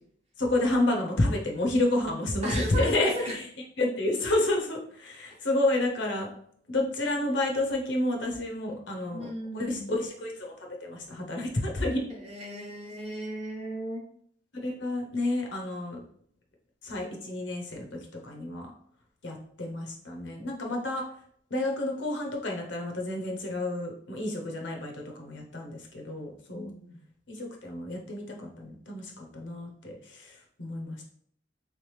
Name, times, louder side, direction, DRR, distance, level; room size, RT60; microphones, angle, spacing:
voice 1, 0.4-3.1 3.8-6.3 6.7-9.3 9.5-12.1 14.6-16.0 16.8-17.9 18.2-18.7 19.2-21.0 21.5-26.7 27.3-31.0, left 1 dB, 65° left, 1 dB, 0.8 m, -30 dB
voice 2, 2.4-3.3 5.3-5.4 9.1-9.9 12.1-14.0 26.5-27.0, equal, 30° right, -1 dB, 0.9 m, -35 dB
3.5 x 3.3 x 3.2 m, 0.63 s
head